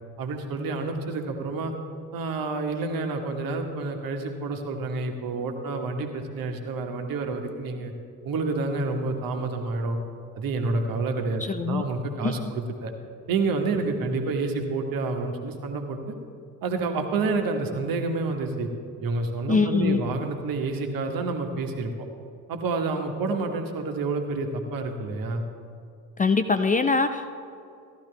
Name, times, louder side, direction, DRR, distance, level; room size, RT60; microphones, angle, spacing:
voice 1, 0.2-1.7 2.1-7.9 8.2-10.0 10.3-12.9 13.3-16.1 16.6-18.7 19.0-22.1 22.5-25.4, right 3 dB, 50° right, 4 dB, 1.5 m, -29 dB
voice 2, 11.4-11.8 12.2-12.4 19.5-20.0 26.2-27.4, left 4 dB, 20° left, 8 dB, 0.5 m, -23 dB
15.0 x 11.5 x 3.4 m, 2.5 s
figure-of-eight pair, 50°, 45 cm